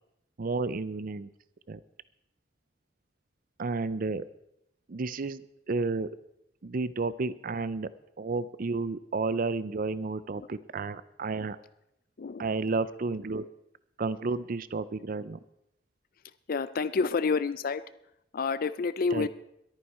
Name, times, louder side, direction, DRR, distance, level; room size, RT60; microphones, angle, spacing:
voice 1, 0.4-1.3 1.7-1.8 3.6-4.2 4.9-6.1 6.6-7.9 8.2-11.6 12.4-13.5 14.0-15.4 19.1-19.3, right 3 dB, 50° right, 17 dB, 0.5 m, -31 dB
voice 2, 16.5-17.8 18.3-19.3, left 4 dB, 50° left, 15 dB, 0.5 m, -28 dB
22.0 x 9.4 x 4.3 m, 0.82 s
head